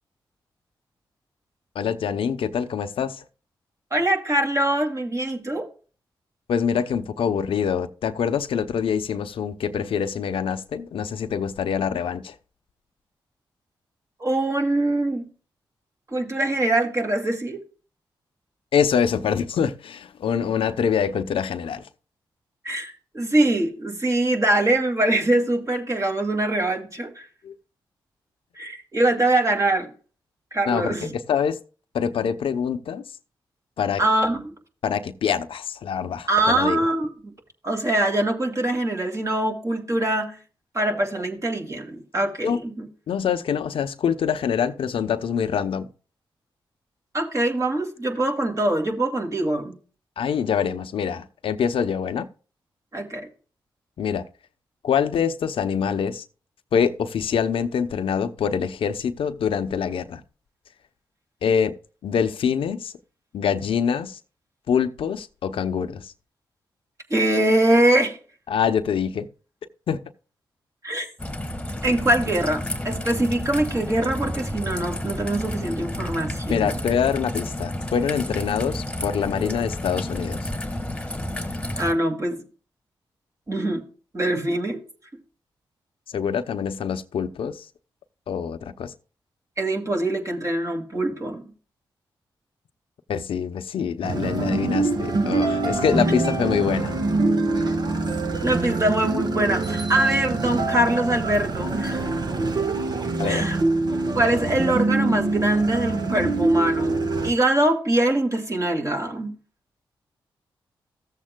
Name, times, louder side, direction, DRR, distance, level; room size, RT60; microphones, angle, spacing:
voice 1, 1.7-3.2 6.5-12.3 18.7-21.9 27.4-27.5 30.7-31.6 31.9-33.0 33.8-34.0 34.8-36.8 42.4-42.6 43.1-45.9 50.2-52.3 54.0-54.2 54.8-56.2 56.7-60.2 61.4-61.7 62.0-62.9 63.3-64.2 64.7-66.1 68.5-69.3 69.9-70.0 76.5-80.5 86.1-87.6 88.3-88.9 93.1-96.9 103.2-103.5, left 7 dB, 75° left, 0.7 m, -25 dB
voice 2, 3.9-5.7 14.2-15.3 16.1-17.6 22.6-27.3 28.6-29.9 30.5-31.1 34.0-34.5 36.3-37.1 37.6-40.4 40.7-42.9 47.1-49.8 52.9-53.3 67.1-68.2 70.8-71.1 71.8-76.8 81.8-82.4 83.5-83.9 84.1-84.8 89.6-91.4 98.4-102.1 103.2-103.6 104.1-107.0 107.2-109.3, right 1 dB, 35° right, 2.3 m, -23 dB
Raindrop / Trickle dribble, 71.2-81.9, left 1 dB, 10° left, 1.5 m, -31 dB
sound 1, 94.0-107.3, right 2 dB, 50° right, 1.3 m, -24 dB
15.0 x 7.4 x 2.2 m
cardioid pair, 50°, 9 cm